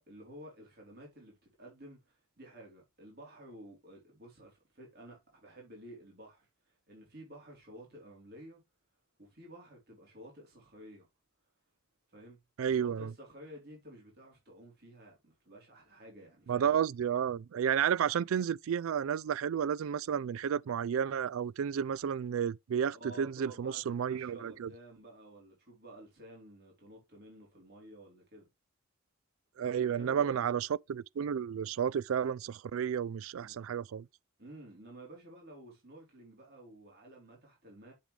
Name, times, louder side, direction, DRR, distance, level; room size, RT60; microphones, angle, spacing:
voice 1, 0.0-8.6 9.2-11.1 12.1-16.7 22.9-28.5 29.6-30.5 33.3-33.6 34.4-37.9, right 1 dB, 50° right, 4.0 m, -52 dB
voice 2, 12.6-13.1 16.5-24.7 29.6-34.1, right 8 dB, 70° right, 0.3 m, -32 dB
7.5 x 7.1 x 3.3 m
head